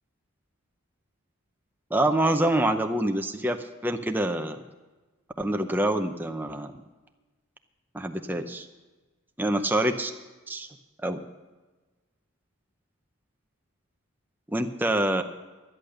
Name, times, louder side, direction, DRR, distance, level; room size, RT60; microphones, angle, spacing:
voice 1, 1.9-4.6 5.4-6.7 7.9-8.7 9.4-10.1 10.5-10.7 11.0-11.2 14.5-15.2, right 1 dB, 10° right, 5 dB, 0.6 m, -26 dB
12.0 x 11.0 x 6.5 m, 1.2 s
head